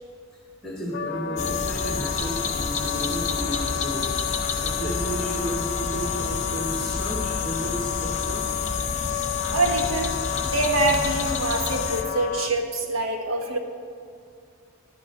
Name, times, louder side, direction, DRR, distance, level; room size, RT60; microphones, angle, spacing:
voice 1, 0.6-4.1 4.5-8.5, right 1 dB, 5° left, -4 dB, 1.7 m, -33 dB
Wind instrument woodwind instrument, 0.9-12.5, left 11 dB, 55° left, 0.5 m, -32 dB
sound 1, 1.4-12.0, left 5 dB, 35° left, 0.9 m, -29 dB
voice 2, 9.1-10.1 10.4-13.6, right 2 dB, 75° right, 2 dB, 1.4 m, -25 dB
15.0 x 11.5 x 3.8 m, 2.4 s
head